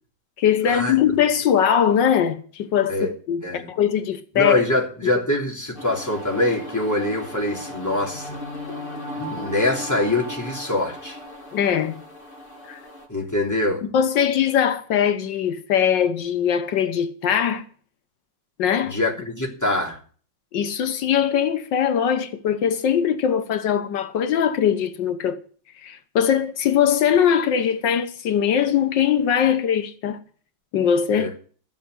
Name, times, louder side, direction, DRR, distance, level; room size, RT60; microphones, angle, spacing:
voice 1, 0.4-4.6 11.5-12.0 12.7-12.8 13.8-17.6 18.6-19.0 20.5-25.4 25.8-30.2 30.7-31.3, left 8 dB, 85° left, 1.7 m, -21 dB
voice 2, 4.3-8.4 9.1-11.2 13.1-13.8 18.9-20.0 31.1-31.3, left 2 dB, 10° left, 3.2 m, -24 dB
sound 1, 5.7-13.1, left 1 dB, 30° left, 2.7 m, -36 dB
13.5 x 7.5 x 8.2 m
omnidirectional pair, 1.9 m